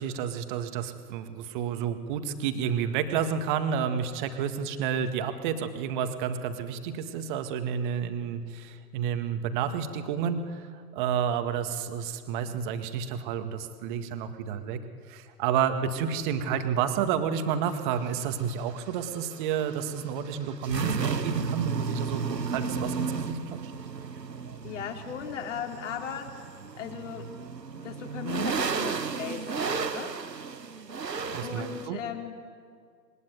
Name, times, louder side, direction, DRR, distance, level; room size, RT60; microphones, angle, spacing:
voice 1, 0.0-14.8 15.1-23.6 31.3-32.0, right 7 dB, 30° right, 8 dB, 2.0 m, -30 dB
sound 1, 17.7-31.9, right 5 dB, 75° right, 1.4 m, -34 dB
voice 2, 24.6-26.5 26.8-27.3 27.7-30.2 31.4-32.4, left 8 dB, 45° left, 2 dB, 3.8 m, -37 dB
27.0 x 22.0 x 9.5 m, 2.1 s
figure-of-eight pair, 120°, 50 cm